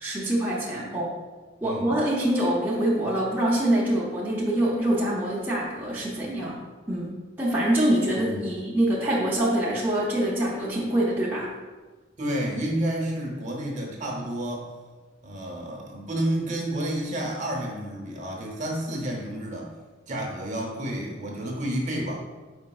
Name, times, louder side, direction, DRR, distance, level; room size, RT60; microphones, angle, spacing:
voice 1, 0.0-1.1 1.6-6.6 6.9-7.1 7.4-11.5, right 1 dB, 10° right, -7 dB, 0.6 m, -25 dB
voice 2, 1.6-2.0 8.2-8.5 12.2-14.7 15.2-19.7 20.1-22.2, right 1 dB, 40° right, -1 dB, 0.8 m, -30 dB
5.0 x 4.2 x 2.3 m, 1.3 s
head